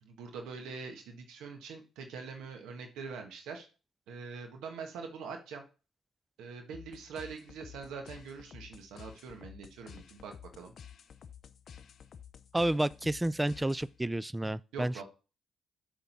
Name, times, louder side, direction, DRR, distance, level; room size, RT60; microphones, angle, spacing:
voice 1, 0.0-3.7 4.1-5.6 6.4-10.7 14.4-15.0, right 5 dB, 90° right, 1.5 m, -44 dB
sound 1, 6.7-14.2, left 8 dB, 55° left, 0.6 m, -52 dB
voice 2, 12.5-15.0, right 1 dB, 10° right, 0.3 m, -30 dB
7.7 x 3.6 x 5.7 m
cardioid pair, 90°, 0 cm